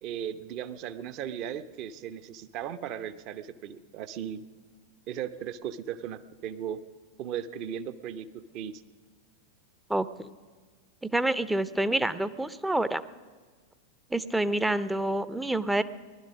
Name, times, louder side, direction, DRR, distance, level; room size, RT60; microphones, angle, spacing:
voice 1, 0.0-4.4 5.1-6.8 7.2-8.8, right 9 dB, 40° right, 13 dB, 0.7 m, -37 dB
voice 2, 9.9-10.3 11.0-13.0 14.1-15.8, right 1 dB, 5° right, 15 dB, 0.5 m, -27 dB
19.0 x 11.5 x 6.2 m, 1.4 s
figure-of-eight pair, 90°, 0 cm